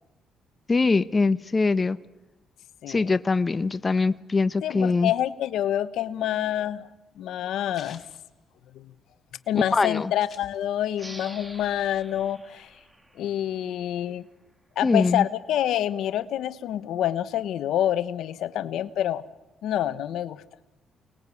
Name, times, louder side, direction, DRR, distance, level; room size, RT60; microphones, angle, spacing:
voice 1, 0.7-2.0 2.9-5.1 9.7-10.1 14.8-15.2, left 3 dB, 30° left, 13 dB, 0.9 m, -23 dB
voice 2, 4.6-6.9 7.2-8.0 8.7-8.9 9.5-12.7 13.2-14.3 14.8-19.2 19.6-20.4, left 11 dB, 80° left, 13 dB, 1.1 m, -27 dB
sound 1, 6.0-9.2 9.5-9.6 9.8-11.1 11.4-12.5, left 7 dB, 55° left, 5.0 m, -50 dB
sound 2, 10.9-14.2, right 1 dB, 15° right, 2.9 m, -47 dB
29.0 x 20.0 x 8.4 m, 1.0 s
cardioid pair, 90°, 0 cm